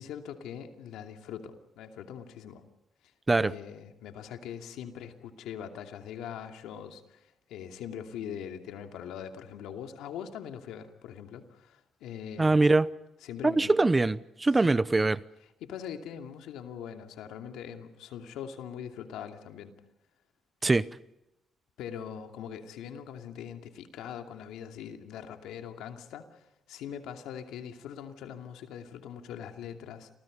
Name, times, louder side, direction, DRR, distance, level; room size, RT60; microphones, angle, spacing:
voice 1, 0.0-2.6 3.4-12.7 13.2-13.8 14.5-14.7 15.6-19.7 21.8-30.1, left 8 dB, 90° left, 2.7 m, -42 dB
voice 2, 12.4-12.9 13.4-15.2 20.6-20.8, right 3 dB, 20° right, 0.8 m, -23 dB
29.5 x 24.0 x 5.3 m
cardioid pair, 90°, 0 cm